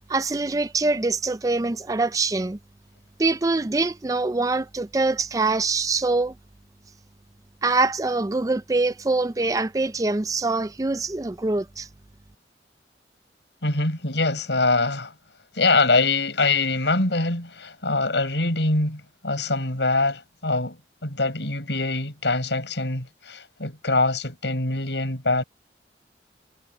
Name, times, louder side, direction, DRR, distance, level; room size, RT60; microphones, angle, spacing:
voice 1, 0.1-2.6 3.2-6.3 7.6-11.9, right 3 dB, 20° right, 0.4 m, -24 dB
voice 2, 13.6-15.1 15.5-20.8 21.0-25.4, left 3 dB, 80° left, 5.8 m, -24 dB
head